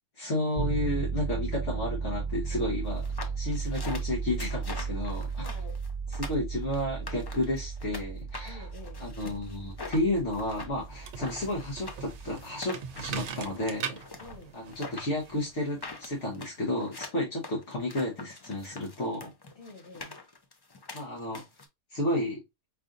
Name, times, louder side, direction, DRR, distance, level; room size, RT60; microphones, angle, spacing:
voice 1, 0.2-3.0 3.3-5.2 6.3-8.6 9.0-14.0 14.5-19.3 20.9-21.4 21.9-22.4, left 1 dB, 70° left, 1.4 m, -32 dB
sound 1, 0.5-12.4, right 5 dB, 5° right, 1.1 m, -35 dB
sound 2, 3.0-8.0 8.3-21.7, left 3 dB, 40° left, 0.3 m, -44 dB
voice 2, 4.8-5.8 8.5-9.1 14.2-14.6 19.5-20.2, left 3 dB, 55° left, 1.8 m, -49 dB
sound 3, 10.8-16.3, right 7 dB, 70° right, 0.9 m, -41 dB
4.8 x 2.5 x 2.4 m
omnidirectional pair, 1.3 m